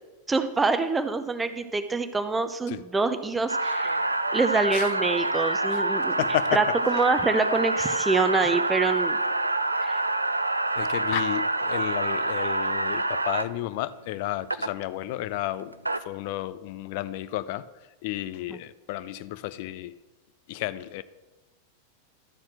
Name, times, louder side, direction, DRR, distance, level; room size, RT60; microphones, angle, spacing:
voice 1, 0.3-6.2 6.5-9.2 9.8-10.0, right 3 dB, 10° right, 0.6 m, -26 dB
sound 1, 3.5-13.4 14.5-14.7 15.6-16.0, right 2 dB, 85° right, 0.3 m, -26 dB
voice 2, 6.2-6.6 10.8-15.7 16.0-17.7 18.0-20.0 20.5-21.0, left 15 dB, 50° left, 0.4 m, -32 dB
12.5 x 4.4 x 6.1 m
figure-of-eight pair, 90°, 0 cm